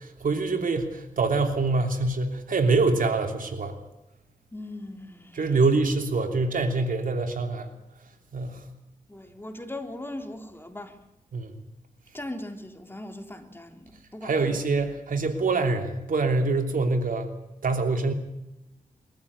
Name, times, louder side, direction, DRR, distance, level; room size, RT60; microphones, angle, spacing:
voice 1, 0.0-3.8 5.3-7.7 8.3-8.6 11.3-11.5 14.2-17.3 17.6-18.1, right 3 dB, 75° right, 5 dB, 3.3 m, -25 dB
voice 2, 4.5-5.5 9.1-11.0 12.1-14.6, left 1 dB, 15° left, 5 dB, 3.6 m, -39 dB
23.0 x 14.5 x 9.7 m, 0.91 s
cardioid pair, 50°, 14 cm